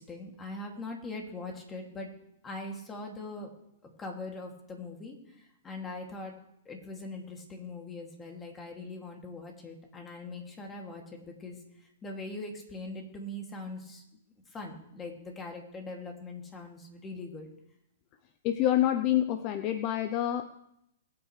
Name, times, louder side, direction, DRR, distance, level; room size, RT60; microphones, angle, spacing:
voice 1, 0.0-2.1 2.4-3.5 4.0-6.3 6.6-14.0 14.5-17.5, left 2 dB, 15° left, 1 dB, 2.5 m, -41 dB
voice 2, 18.4-20.5, left 12 dB, 40° left, 10 dB, 0.7 m, -27 dB
22.0 x 8.9 x 3.3 m, 0.80 s
hypercardioid pair, 135°, 0 cm